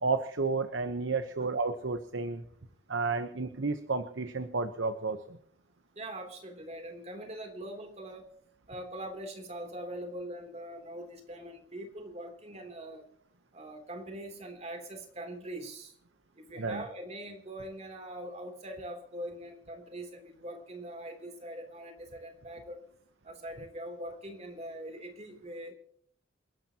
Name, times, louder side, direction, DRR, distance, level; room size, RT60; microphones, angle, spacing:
voice 1, 0.0-2.4 2.9-5.4 16.6-16.8, right 4 dB, 80° right, 9 dB, 1.0 m, -31 dB
voice 2, 5.9-8.3 8.7-13.1 13.5-15.9 16.3-22.8 23.2-25.7, right 1 dB, 35° right, 4 dB, 3.2 m, -42 dB
29.0 x 12.0 x 3.0 m, 0.65 s
head